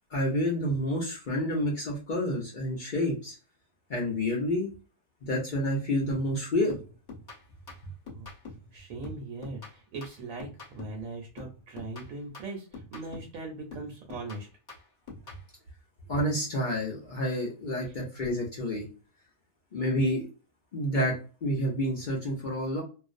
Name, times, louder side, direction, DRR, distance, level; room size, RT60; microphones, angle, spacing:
voice 1, 0.1-3.4 3.9-4.7 5.3-6.8 16.1-18.9 19.7-20.3 20.7-22.8, equal, 65° left, -2 dB, 0.4 m, -29 dB
sound 1, 6.7-8.7 9.0-11.1 11.4-13.4 13.7-15.5, left 3 dB, 35° left, 1.0 m, -46 dB
voice 2, 8.7-14.5, right 3 dB, 70° right, 1 dB, 0.9 m, -40 dB
2.5 x 2.0 x 2.4 m, 0.35 s
omnidirectional pair, 1.6 m